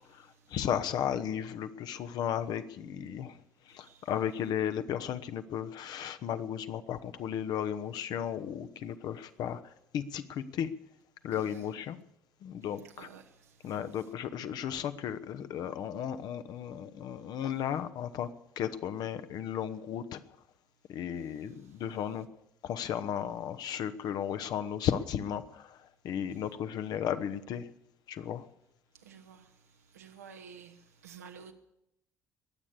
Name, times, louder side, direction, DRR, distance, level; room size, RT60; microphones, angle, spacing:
voice 1, 0.1-3.4 3.7-10.7 11.2-12.0 12.4-13.1 13.6-18.3 18.6-20.2 20.9-22.3 22.6-27.7 28.1-28.5, left 9 dB, 55° left, 1.0 m, -35 dB
voice 2, 11.3-11.6 12.8-13.7 29.0-29.5 29.9-31.5, right 7 dB, 80° right, 1.2 m, -51 dB
22.0 x 8.7 x 6.8 m
figure-of-eight pair, 50°, 8 cm